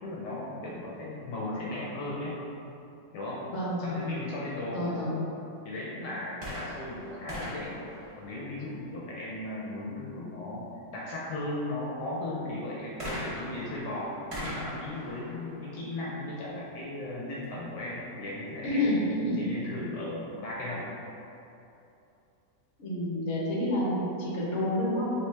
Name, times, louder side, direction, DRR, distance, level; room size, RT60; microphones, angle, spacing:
voice 1, 0.0-2.3 3.1-3.4 3.8-4.9 5.6-7.8 8.2-10.6 10.9-14.1 14.4-19.0 19.4-20.9, left 1 dB, 75° left, -5 dB, 1.2 m, -36 dB
voice 2, 3.5-4.0 4.7-5.1 18.6-19.5 22.8-25.1, left 1 dB, 50° left, -6 dB, 1.0 m, -29 dB
sound 1, 6.3-8.9 13.0-16.6 17.4-17.5, equal, 55° right, 0.3 m, -41 dB
3.3 x 2.9 x 3.1 m, 2.8 s
omnidirectional pair, 1.9 m